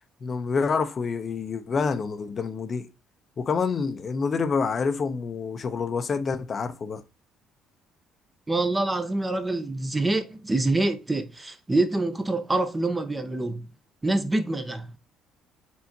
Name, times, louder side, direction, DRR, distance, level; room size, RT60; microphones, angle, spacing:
voice 1, 0.2-2.9 3.4-7.0, left 5 dB, 45° left, 0.6 m, -27 dB
voice 2, 8.5-13.7 14.0-15.0, right 2 dB, 20° right, 0.6 m, -26 dB
4.5 x 3.5 x 2.7 m
supercardioid pair, 70°, 0 cm